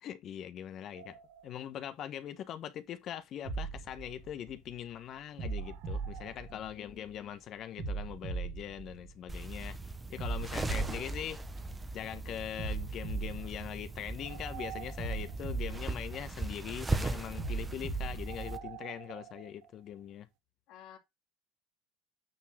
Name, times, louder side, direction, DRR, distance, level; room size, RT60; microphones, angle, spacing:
voice 1, 0.0-9.8 10.1-11.4 11.9-20.3, left 10 dB, 50° left, 1.1 m, -42 dB
sound 1, 0.9-2.2 3.3-4.6 5.4-7.0 7.3-7.4 8.8-8.9 9.3-9.4 9.6-9.7 10.3-10.6 11.1-11.2 11.5-11.9 12.7-12.8 13.3-15.8 18.1-20.1, right 14 dB, 80° right, 1.0 m, -51 dB
sound 2, 3.4-4.8 5.4-7.1 7.8-9.6 10.2-12.0 12.6-14.4 15.0-16.7 17.4-18.8, right 4 dB, 45° right, 2.6 m, -39 dB
voice 2, 6.5-7.3 10.8-11.0 20.7-21.0, left 11 dB, 70° left, 2.2 m, -55 dB
sound 3, 9.3-18.6, right 3 dB, 15° right, 1.0 m, -39 dB
9.1 x 3.8 x 4.4 m
supercardioid pair, 110°, 0 cm